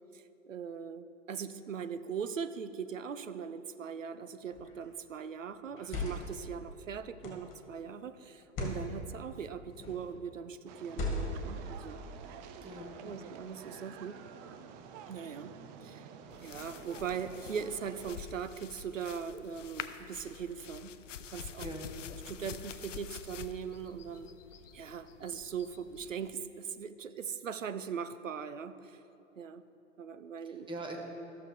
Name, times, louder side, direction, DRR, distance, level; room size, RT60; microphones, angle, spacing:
voice 1, 0.1-12.0 13.0-14.2 15.1-15.5 15.8-16.1 16.4-21.0 21.3-21.7 22.3-24.3 24.7-29.0 29.4-29.6 30.0-30.7, right 7 dB, 90° right, 12 dB, 0.5 m, -40 dB
sound 1, 4.5-4.8 5.7-6.4 7.2-7.6 8.4-8.8 9.7-10.1 10.9-11.5, left 2 dB, 35° left, 2.0 m, -37 dB
sound 2, 10.7-18.2, right 7 dB, 35° right, 0.5 m, -50 dB
voice 2, 12.6-13.2 21.6-22.0 30.4-31.0, right 2 dB, 15° right, 1 dB, 1.2 m, -42 dB
sound 3, 16.3-26.3, left 8 dB, 75° left, 0.5 m, -47 dB
14.0 x 6.7 x 3.3 m, 2.9 s
figure-of-eight pair, 95°, 38 cm